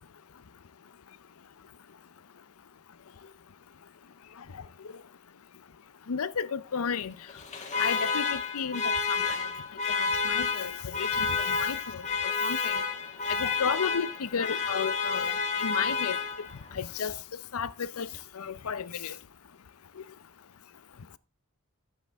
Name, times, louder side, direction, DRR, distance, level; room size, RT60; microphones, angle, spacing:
voice 1, 6.1-7.1 7.8-8.8 9.3-9.4 9.9-12.0 12.4-12.8 13.4-15.3 15.6-16.2 16.8-17.2 17.5-18.1 18.4-19.1, left 6 dB, 80° left, 0.6 m, -33 dB
Alarm, 7.3-16.7, left 5 dB, 35° left, 1.6 m, -30 dB
12.5 x 8.1 x 3.5 m
head